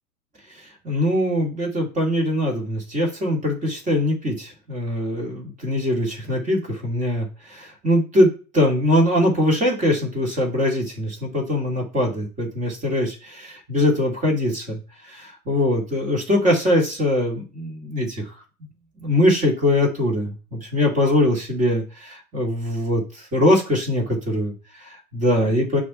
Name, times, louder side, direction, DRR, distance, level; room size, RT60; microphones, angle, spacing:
voice 1, 0.5-18.3 19.0-25.8, left 1 dB, 15° right, -1 dB, 2.2 m, -22 dB
6.3 x 2.9 x 5.5 m, 0.33 s
figure-of-eight pair, 105°, 47 cm